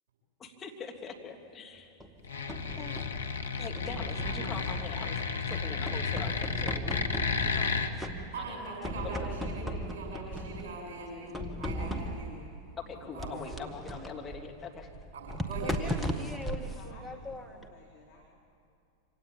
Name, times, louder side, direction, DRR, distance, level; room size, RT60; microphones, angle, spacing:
voice 1, 0.4-1.9 2.8-2.9 3.6-5.2 5.5-7.1 7.3-7.8 8.3-8.6 9.0-9.3 12.9-14.9, left 5 dB, 20° left, 0 dB, 2.7 m, -43 dB
sound 1, 2.0-3.2 3.8-5.1 5.5-7.7 8.0-8.5 8.8-10.8 11.3-12.4 13.2-17.7, equal, 5° right, 1.6 m, -37 dB
sound 2, 2.2-7.9, left 5 dB, 75° left, 1.2 m, -32 dB
voice 2, 8.3-12.4 13.1-13.5 15.1-16.2, right 2 dB, 55° right, -1 dB, 7.9 m, -41 dB
voice 3, 16.7-18.2, left 3 dB, 55° left, -1 dB, 2.8 m, -56 dB
25.5 x 17.5 x 8.8 m, 2.5 s
figure-of-eight pair, 90°, 0 cm